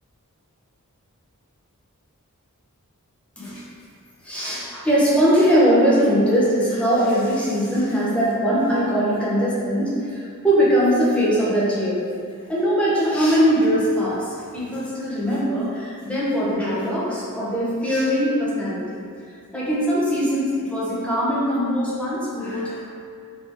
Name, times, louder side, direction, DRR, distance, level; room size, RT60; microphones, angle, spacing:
voice 1, 4.2-12.0 12.5-19.0 19.5-22.8, equal, 5° left, -9 dB, 0.7 m, -21 dB
3.4 x 2.8 x 3.3 m, 2.4 s
head